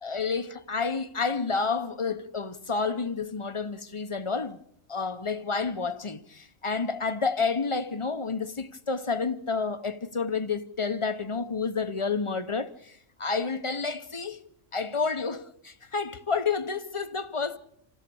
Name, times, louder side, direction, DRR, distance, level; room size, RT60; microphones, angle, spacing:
voice 1, 0.0-4.6 4.9-14.4 14.7-17.6, left 4 dB, 30° left, 0.8 m, -30 dB
27.5 x 15.5 x 7.0 m
omnidirectional pair, 1.4 m